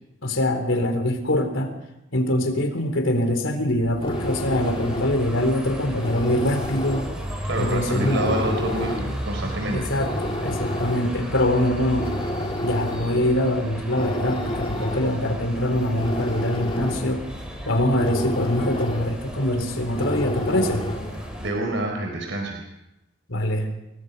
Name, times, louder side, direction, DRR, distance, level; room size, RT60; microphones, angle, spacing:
voice 1, 0.2-1.7 2.1-7.1 7.6-8.4 9.7-12.1 12.6-17.2 17.7-20.8 23.3-23.7, left 1 dB, 85° left, 6 dB, 3.8 m, -23 dB
sound 1, 3.7-21.3, left 1 dB, 25° left, 2.0 m, -32 dB
sound 2, 4.1-21.5, equal, 5° right, 6.3 m, -34 dB
voice 2, 7.5-9.9 21.4-22.6, right 1 dB, 70° right, 2 dB, 4.3 m, -27 dB
28.5 x 21.5 x 5.4 m, 0.90 s
head